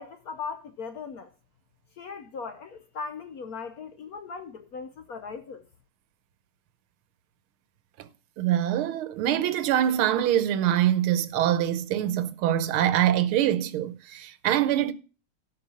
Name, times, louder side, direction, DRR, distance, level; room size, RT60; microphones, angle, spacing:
voice 1, 0.0-1.3 2.0-5.7, left 5 dB, 65° left, 0.9 m, -38 dB
voice 2, 8.4-14.9, right 11 dB, 90° right, 1.7 m, -24 dB
12.0 x 5.4 x 6.2 m
omnidirectional pair, 2.3 m